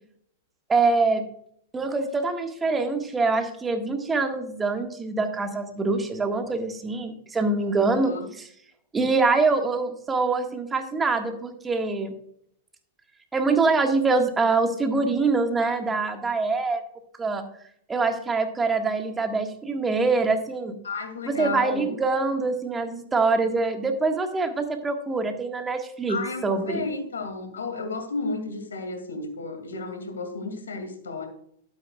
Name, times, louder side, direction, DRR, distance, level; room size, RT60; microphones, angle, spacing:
voice 1, 0.7-1.2 1.7-8.5 8.9-12.1 13.3-16.8 17.2-17.4 17.9-20.8 21.3-26.2 26.4-26.8, right 3 dB, 15° right, 5 dB, 1.6 m, -24 dB
voice 2, 7.7-8.3 20.8-21.9 26.1-31.3, left 3 dB, 85° left, 7 dB, 2.3 m, -33 dB
11.5 x 9.3 x 2.3 m, 0.67 s
hypercardioid pair, 110°, 0 cm